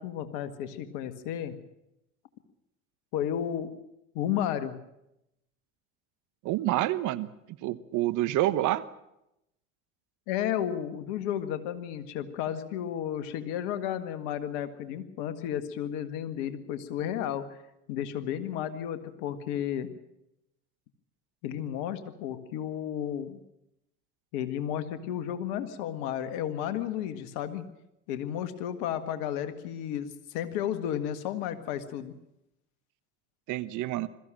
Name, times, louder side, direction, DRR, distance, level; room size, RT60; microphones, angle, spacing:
voice 1, 0.0-1.5 3.1-3.7 4.2-4.7 10.3-17.5 17.9-19.9 21.4-23.4 24.3-27.7 28.1-32.1, left 10 dB, 65° left, 10 dB, 1.8 m, -33 dB
voice 2, 6.4-7.3 7.6-8.8 33.5-34.1, right 15 dB, 60° right, 14 dB, 1.2 m, -27 dB
21.5 x 14.5 x 9.0 m, 0.86 s
hypercardioid pair, 65°, 35 cm